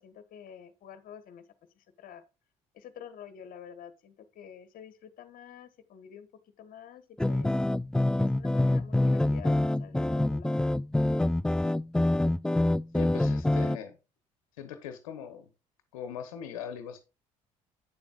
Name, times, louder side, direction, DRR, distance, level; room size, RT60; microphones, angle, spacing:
voice 1, 0.0-1.4 1.8-2.2 2.7-6.3 6.6-7.5 8.2-10.7, left 8 dB, 55° left, 1.3 m, -48 dB
sound 1, 7.2-13.8, left 1 dB, 5° left, 0.3 m, -26 dB
voice 2, 12.9-13.9 14.6-15.4 15.9-17.0, left 8 dB, 80° left, 1.0 m, -40 dB
8.8 x 7.1 x 2.5 m
hypercardioid pair, 60°, 17 cm